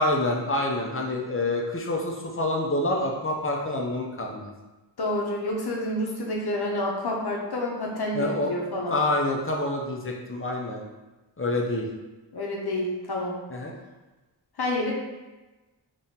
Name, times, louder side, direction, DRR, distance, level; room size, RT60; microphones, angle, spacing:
voice 1, 0.0-4.5 8.1-8.5 8.9-10.8 11.4-11.9 13.5-13.8, left 1 dB, 30° left, 0 dB, 0.5 m, -27 dB
voice 2, 5.0-9.0 12.3-13.4 14.6-14.9, left 1 dB, 55° left, -2 dB, 0.8 m, -28 dB
3.6 x 3.0 x 2.8 m, 1.1 s
wide cardioid pair, 95°, 46 cm